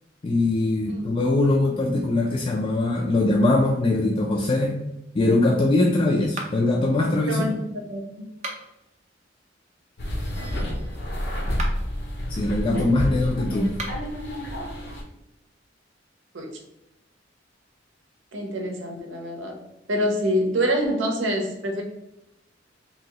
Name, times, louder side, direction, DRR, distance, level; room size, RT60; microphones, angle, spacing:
voice 1, 0.2-4.8 5.1-7.4 12.3-13.7, left 2 dB, 30° left, -1 dB, 0.3 m, -22 dB
sound 1, 6.3-6.8 8.3-8.9 11.4-12.0 13.7-14.2, right 2 dB, 40° right, 0.5 m, -36 dB
voice 2, 7.3-8.2 16.3-16.5 18.3-19.6 19.9-21.8, equal, 85° right, 3 dB, 0.7 m, -26 dB
sound 2, 10.0-15.0, equal, 60° left, 0.7 m, -29 dB
2.8 x 2.7 x 2.9 m, 0.88 s
head